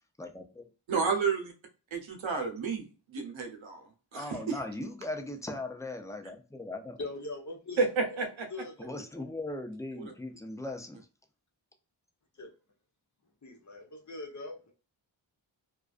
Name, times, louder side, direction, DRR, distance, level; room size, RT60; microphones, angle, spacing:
voice 1, 0.2-0.7 4.1-7.0 8.8-11.1, left 2 dB, 5° left, 0.4 m, -39 dB
voice 2, 0.9-1.5 1.9-4.6 7.8-8.5 10.0-10.1, right 4 dB, 75° right, 0.8 m, -31 dB
voice 3, 7.0-7.8 8.5-9.2 12.4-12.5 13.4-14.7, left 2 dB, 40° left, 0.8 m, -41 dB
2.3 x 2.2 x 2.4 m
cardioid pair, 55°, 47 cm